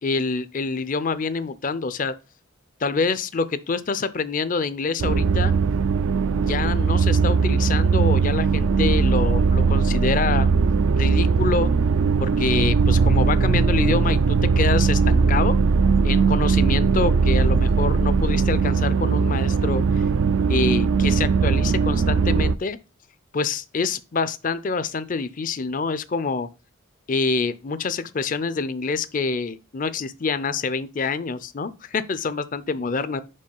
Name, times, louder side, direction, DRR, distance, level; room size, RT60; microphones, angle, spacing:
voice 1, 0.0-2.1 2.8-5.5 6.4-10.5 11.0-11.7 12.2-15.6 16.0-20.0 20.5-22.8 23.3-26.5 27.1-33.2, left 4 dB, 40° left, 0.5 m, -26 dB
sound 1, 5.0-22.6, right 5 dB, 80° right, 0.4 m, -19 dB
5.4 x 4.5 x 5.4 m
head